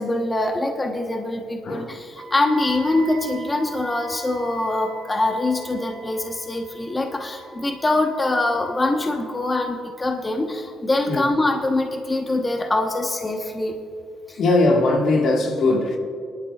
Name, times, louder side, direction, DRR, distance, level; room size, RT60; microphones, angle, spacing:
voice 1, 0.0-13.8 14.3-14.4, left 2 dB, 25° left, 1.0 m, -24 dB
voice 2, 1.6-2.0 11.1-11.3 14.4-16.0, left 2 dB, 65° left, 1.6 m, -20 dB
Wind instrument woodwind instrument, 2.2-10.1, right 5 dB, 70° right, 2.6 m, -42 dB
20.0 x 11.5 x 2.4 m
cardioid pair, 90°, 0 cm